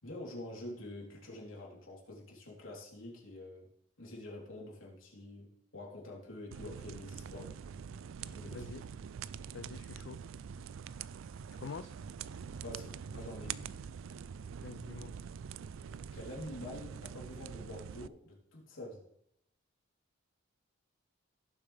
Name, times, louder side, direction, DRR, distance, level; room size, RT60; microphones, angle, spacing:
voice 1, 0.0-3.7 4.0-7.6 8.3-8.7 12.6-13.7 16.1-19.0, left 1 dB, 85° left, -3 dB, 3.5 m, -47 dB
sound 1, 6.5-18.1, right 7 dB, 80° right, 0.4 m, -45 dB
voice 2, 8.5-8.8 9.5-10.2 11.6-11.9 14.6-15.1, left 4 dB, 65° left, 12 dB, 0.4 m, -45 dB
17.0 x 7.2 x 3.4 m, 0.74 s
head